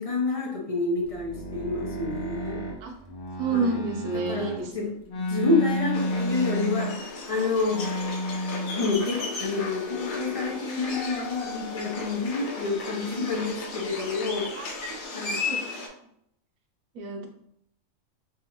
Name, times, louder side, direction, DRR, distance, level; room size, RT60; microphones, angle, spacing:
voice 1, 0.0-2.6 3.5-3.8 4.1-4.9 5.3-7.8 8.7-14.5 15.1-15.5, left 3 dB, 35° left, -1 dB, 0.5 m, -28 dB
sound 1, 1.0-4.6 5.1-7.2 7.7-8.9 9.2-10.5 10.9-12.1 12.6-13.5 13.8-14.9, left 1 dB, 60° left, 0.9 m, -33 dB
voice 2, 3.4-4.7 14.5-14.7 15.4-15.7 16.9-17.3, right 4 dB, 85° right, 2 dB, 1.1 m, -29 dB
sound 2, 5.9-15.9, left 3 dB, 85° left, 1.1 m, -35 dB
4.4 x 2.4 x 3.0 m, 0.72 s
omnidirectional pair, 1.4 m